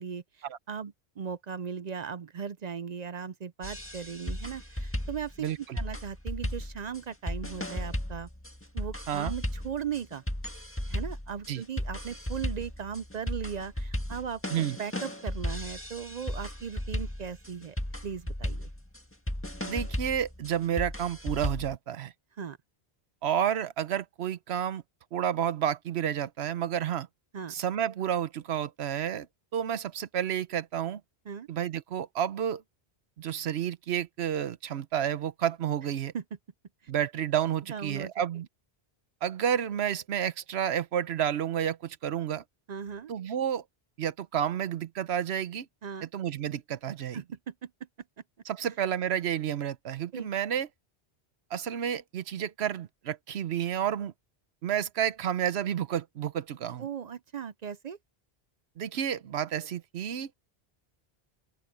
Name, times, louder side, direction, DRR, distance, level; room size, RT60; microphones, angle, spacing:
voice 1, 0.0-8.3 8.7-10.2 10.9-17.8 18.0-18.7 22.4-22.6 27.3-27.5 31.3-31.5 36.1-36.2 37.7-38.1 42.7-43.1 45.8-46.1 47.1-47.7 50.1-50.3 56.8-58.0, right 7 dB, 50° right, 0.5 m, -38 dB
sound 1, 3.6-21.8, left 1 dB, 10° left, 1.6 m, -35 dB
voice 2, 5.4-5.8 9.1-9.3 11.5-11.6 14.5-14.8 19.6-22.1 23.2-24.8 25.1-27.1 27.5-29.3 29.5-31.0 31.5-32.6 33.2-36.1 36.9-38.5 39.2-42.4 43.1-43.6 44.0-45.7 46.0-47.2 48.5-50.7 51.5-54.1 54.6-56.9 58.8-60.3, right 9 dB, 85° right, 1.0 m, -30 dB
open air
omnidirectional pair, 1.1 m